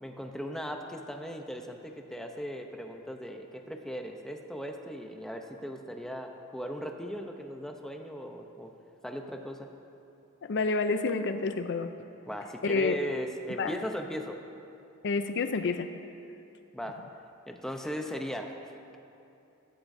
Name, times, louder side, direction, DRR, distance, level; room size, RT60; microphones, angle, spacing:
voice 1, 0.0-8.7 9.0-9.7 12.3-14.4 16.7-17.0 17.5-18.5, equal, ahead, 3 dB, 0.7 m, -38 dB
voice 2, 10.4-11.9 12.6-13.0 13.6-13.8 15.0-15.9, left 4 dB, 55° left, 8 dB, 0.5 m, -28 dB
16.5 x 13.5 x 2.7 m, 2.8 s
head